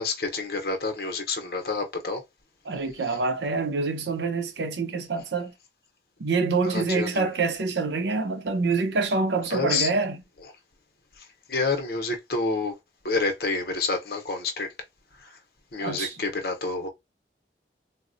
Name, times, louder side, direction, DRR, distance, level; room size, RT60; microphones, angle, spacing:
voice 1, 0.0-2.2 3.1-3.2 6.7-7.3 9.5-9.9 11.2-12.8 13.0-14.7 15.2-15.4 15.7-16.9, left 3 dB, 60° left, 0.8 m, -28 dB
voice 2, 2.7-5.5 6.2-10.2 15.8-16.1, right 4 dB, 80° right, 0.6 m, -26 dB
3.9 x 2.1 x 2.6 m
head